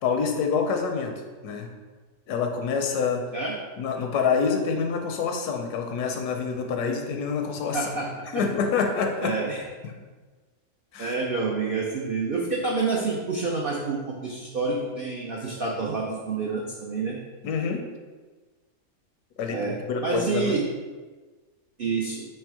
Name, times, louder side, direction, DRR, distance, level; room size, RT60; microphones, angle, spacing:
voice 1, 0.0-1.1 1.4-1.7 2.3-3.2 3.8-7.9 8.3-9.4 10.9-11.1 17.4-17.8 19.4-20.6, left 5 dB, 85° left, 4 dB, 1.2 m, -26 dB
voice 2, 7.7-8.4 9.2-9.6 11.0-17.2 19.5-19.8 20.0-20.7 21.8-22.3, right 4 dB, 75° right, -3 dB, 0.5 m, -28 dB
3.5 x 3.2 x 4.6 m, 1.3 s
omnidirectional pair, 1.6 m